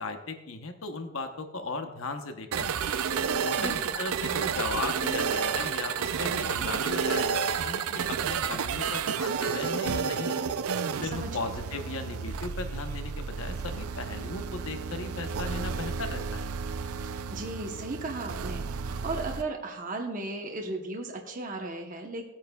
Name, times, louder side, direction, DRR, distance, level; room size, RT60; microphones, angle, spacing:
voice 1, 0.0-3.0 3.4-10.4 11.0-16.5, left 3 dB, 70° left, 6 dB, 0.9 m, -37 dB
sound 1, 2.5-19.4, right 6 dB, 85° right, 0.5 m, -31 dB
voice 2, 3.6-4.0 11.0-11.5 17.0-22.3, right 2 dB, 35° right, 2 dB, 0.9 m, -36 dB
17.5 x 8.7 x 2.3 m, 1.0 s
head